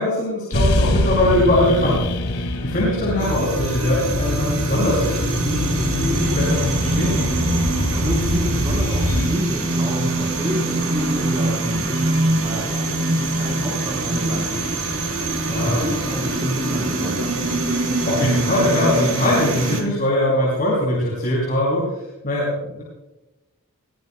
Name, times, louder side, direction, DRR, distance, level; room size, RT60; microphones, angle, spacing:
voice 1, 0.0-7.2 15.5-15.8 18.0-22.8, left 1 dB, 40° left, -7 dB, 6.8 m, -21 dB
sound 1, 0.5-9.3, left 1 dB, 85° left, 1.6 m, -24 dB
sound 2, 3.2-19.8, right 2 dB, 70° right, 4.1 m, -24 dB
voice 2, 7.5-15.0 15.5-17.4, equal, 20° right, -5 dB, 4.1 m, -29 dB
24.0 x 17.0 x 2.2 m, 0.99 s
head